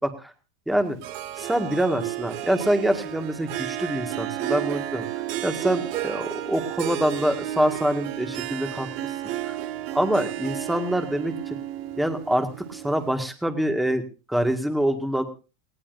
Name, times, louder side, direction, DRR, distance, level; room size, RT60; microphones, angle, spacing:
voice 1, 0.0-0.3 0.7-1.0 1.4-5.1 5.4-8.9 9.4-9.6 9.9-11.6 12.0-15.2, right 1 dB, 5° right, 7 dB, 2.0 m, -25 dB
Harp, 1.0-13.2, right 14 dB, 50° right, 1.6 m, -32 dB
20.0 x 18.0 x 2.7 m, 0.33 s
supercardioid pair, 165°, 0 cm